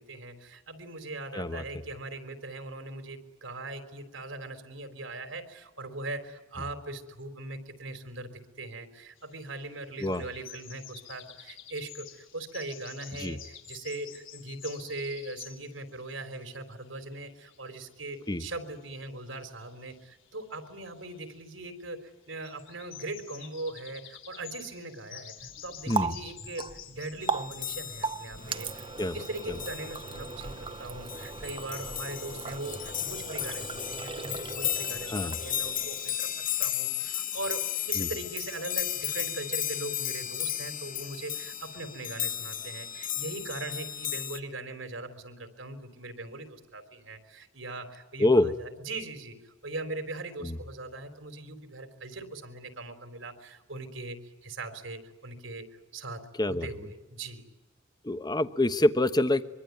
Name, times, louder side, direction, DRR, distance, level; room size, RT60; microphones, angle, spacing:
voice 1, 0.0-55.7 55.9-57.5, right 2 dB, 80° right, 8 dB, 3.8 m, -40 dB
sound 1, 9.2-27.4, left 10 dB, 80° left, 3.8 m, -50 dB
Water tap faucet, 25.4-36.2, right 4 dB, 25° right, 0.8 m, -38 dB
sound 2, 27.2-44.4, left 11 dB, 45° left, 1.2 m, -35 dB
voice 2, 48.2-48.5 50.4-50.5 56.4-56.7 58.0-59.4, left 1 dB, 20° left, 11 dB, 1.0 m, -26 dB
24.5 x 24.0 x 9.5 m, 1.1 s
head